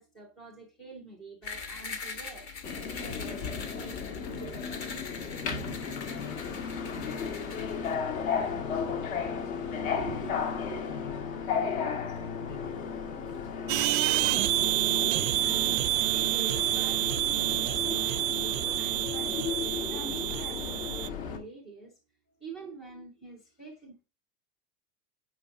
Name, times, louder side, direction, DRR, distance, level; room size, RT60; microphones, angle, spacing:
voice 1, 0.0-4.2 10.0-10.8 15.7-21.9 22.4-24.0, right 4 dB, ahead, 0.3 m, -46 dB
sound 1, 1.4-7.9, left 5 dB, 30° left, 1.1 m, -42 dB
Subway metro underground, 2.6-21.4, left 6 dB, 55° left, 2.0 m, -34 dB
voice 2, 5.2-6.7 7.0-10.2 10.9-14.6 22.7-22.8, left 6 dB, 75° left, 4.8 m, -48 dB
sound 2, 13.7-21.1, right 18 dB, 55° right, 0.5 m, -28 dB
9.6 x 5.2 x 3.6 m
supercardioid pair, 165°, 47 cm